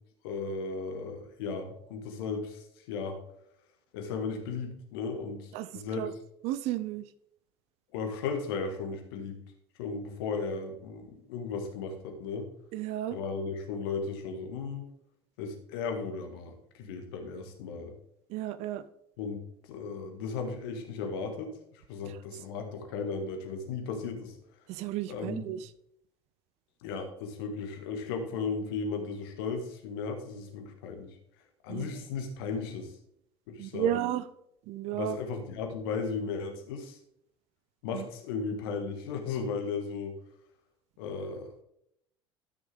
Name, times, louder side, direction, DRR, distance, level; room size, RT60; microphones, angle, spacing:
voice 1, 0.2-3.2 3.9-6.1 7.9-9.4 9.8-12.5 13.1-14.9 15.4-17.9 19.2-19.4 19.7-24.3 25.1-25.5 26.8-31.2 31.6-32.9 33.5-34.0 34.9-37.0 37.8-40.2 41.0-41.5, left 5 dB, 65° left, 4 dB, 1.7 m, -35 dB
voice 2, 5.5-6.1 6.4-7.0 12.7-13.2 18.3-18.8 22.1-22.2 24.7-25.7 31.7-31.9 33.6-34.2 34.7-35.2 37.9-38.1, right 12 dB, 55° right, 14 dB, 0.6 m, -33 dB
12.5 x 6.3 x 3.6 m, 0.75 s
figure-of-eight pair, 65°, 14 cm